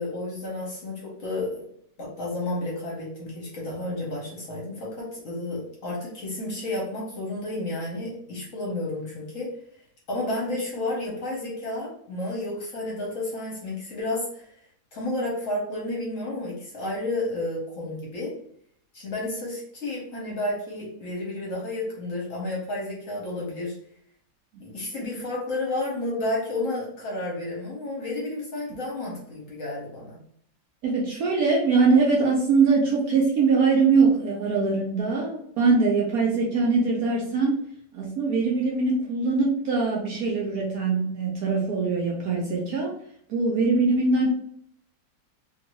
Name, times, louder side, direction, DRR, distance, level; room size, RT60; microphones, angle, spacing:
voice 1, 0.0-1.7 2.0-9.5 10.1-14.5 14.9-18.3 18.9-23.7 24.6-30.2, left 2 dB, 55° left, -4 dB, 1.1 m, -31 dB
voice 2, 30.8-37.6 37.9-42.9 43.3-44.3, right 4 dB, 70° right, -2 dB, 0.9 m, -22 dB
2.9 x 2.6 x 2.9 m, 0.66 s
omnidirectional pair, 2.0 m